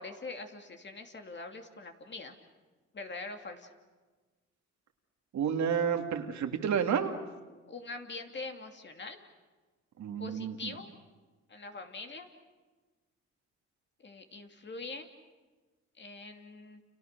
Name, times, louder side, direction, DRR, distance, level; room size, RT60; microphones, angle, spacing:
voice 1, 0.0-2.3 2.9-3.7 7.7-9.2 10.2-10.9 11.5-12.3 14.0-15.1 16.0-16.8, left 3 dB, 35° left, 5 dB, 2.8 m, -43 dB
voice 2, 5.3-7.1 10.0-10.7, right 7 dB, 65° right, 5 dB, 2.6 m, -30 dB
29.5 x 29.0 x 6.8 m, 1.3 s
cardioid pair, 90°, 30 cm